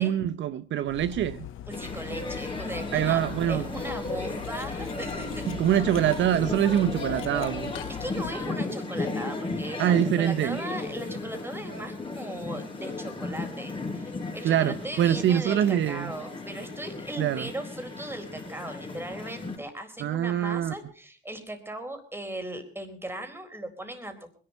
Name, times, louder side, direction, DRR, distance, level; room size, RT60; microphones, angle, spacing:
voice 1, 0.0-1.5 2.9-3.7 5.5-7.7 9.8-10.6 14.4-16.1 17.2-17.5 20.0-20.7, right 11 dB, 70° right, 0.7 m, -24 dB
Cutlery silverware, 0.8-8.6, left 11 dB, 85° left, 1.0 m, -41 dB
London Subway accordion music, 1.7-19.6, left 2 dB, 25° left, 4.7 m, -35 dB
voice 2, 1.7-5.5 8.0-24.3, right 1 dB, 10° right, 4.1 m, -38 dB
21.0 x 11.5 x 5.4 m
cardioid pair, 90°, 20 cm